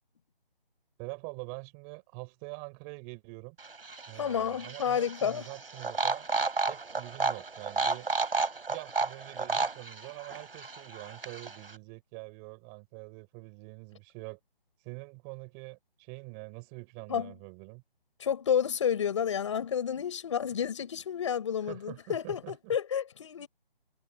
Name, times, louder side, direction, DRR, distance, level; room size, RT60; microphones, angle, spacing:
voice 1, 1.0-3.6 4.1-6.3 6.7-8.1 8.7-14.4 14.8-17.8 21.7-22.8, right 32 dB, 10° right, 4.5 m, -45 dB
sound 1, 3.6-11.7, right 4 dB, 75° right, 6.4 m, -33 dB
voice 2, 4.1-5.5 17.1-17.3 18.2-23.5, left 8 dB, 30° left, 5.9 m, -30 dB
hypercardioid pair, 170°, 29 cm